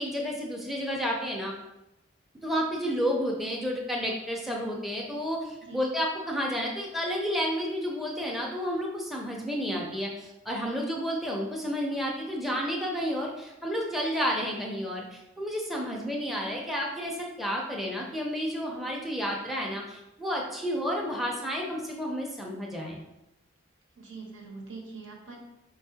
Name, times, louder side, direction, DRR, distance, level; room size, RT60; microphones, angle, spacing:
voice 1, 0.0-1.5 2.4-23.0, equal, ahead, -1 dB, 0.5 m, -31 dB
voice 2, 23.9-25.4, right 4 dB, 70° right, 0 dB, 1.0 m, -43 dB
4.6 x 4.1 x 2.7 m, 0.94 s
head